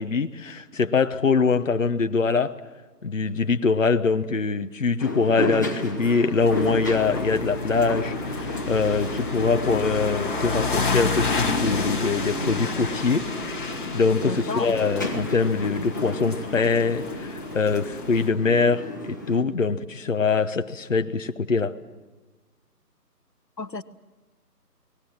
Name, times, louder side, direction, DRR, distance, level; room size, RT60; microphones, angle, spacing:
voice 1, 0.0-2.5 3.0-13.3 13.9-21.8, left 4 dB, 50° left, 9 dB, 1.0 m, -23 dB
sound 1, 5.0-19.4, left 1 dB, 10° left, 1.0 m, -32 dB
sound 2, 6.4-18.3, left 3 dB, 30° left, 1.9 m, -31 dB
voice 2, 14.2-14.7 23.6-23.8, left 3 dB, 90° left, 13 dB, 1.2 m, -31 dB
30.0 x 19.5 x 7.5 m, 1.2 s
figure-of-eight pair, 155°, 48 cm